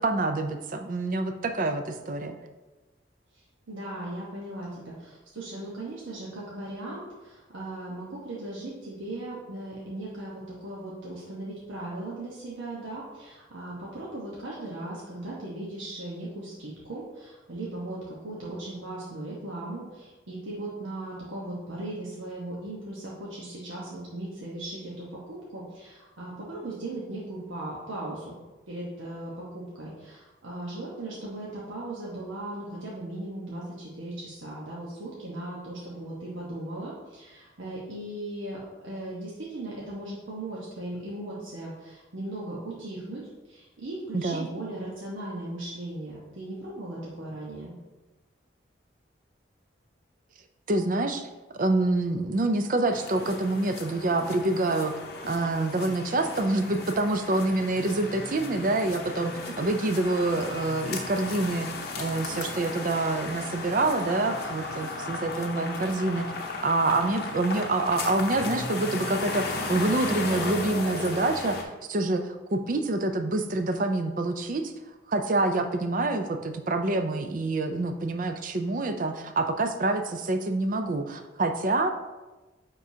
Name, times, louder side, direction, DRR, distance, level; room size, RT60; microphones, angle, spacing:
voice 1, 0.0-2.4 44.1-44.5 50.7-51.3 51.6-54.9 55.2-61.7 62.0-66.3 66.6-74.7 75.1-81.9, right 2 dB, 45° right, 7 dB, 0.4 m, -26 dB
voice 2, 3.7-28.4 28.7-43.2 43.5-47.7 67.1-67.6, right 1 dB, 90° right, -6 dB, 1.1 m, -38 dB
sound 1, 52.9-71.6, left 3 dB, 55° left, 0.7 m, -35 dB
9.2 x 3.7 x 2.8 m, 1.2 s
head